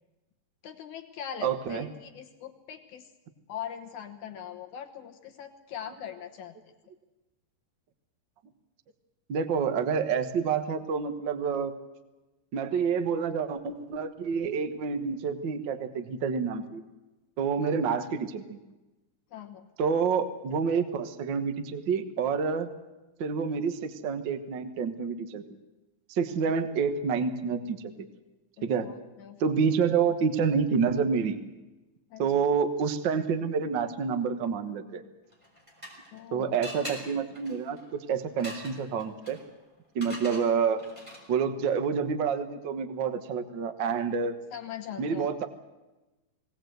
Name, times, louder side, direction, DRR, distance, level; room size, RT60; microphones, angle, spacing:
voice 1, 0.6-3.1 3.5-6.6 17.6-17.7 19.3-19.7 26.5-26.6 28.6-29.4 32.1-32.3 36.1-36.6 44.5-45.5, left 9 dB, 65° left, 5 dB, 2.4 m, -41 dB
voice 2, 1.4-1.9 9.3-11.7 12.5-16.8 17.4-18.6 19.8-22.7 23.2-25.4 26.1-27.9 28.6-28.9 29.4-31.4 32.2-35.0 36.3-39.4 39.9-40.8 41.3-44.3 45.0-45.5, right 6 dB, 75° right, 10 dB, 1.0 m, -28 dB
sound 1, 35.3-36.2 36.6-41.5, equal, 10° right, 4.1 m, -44 dB
21.0 x 18.0 x 7.9 m, 1.1 s
omnidirectional pair, 4.1 m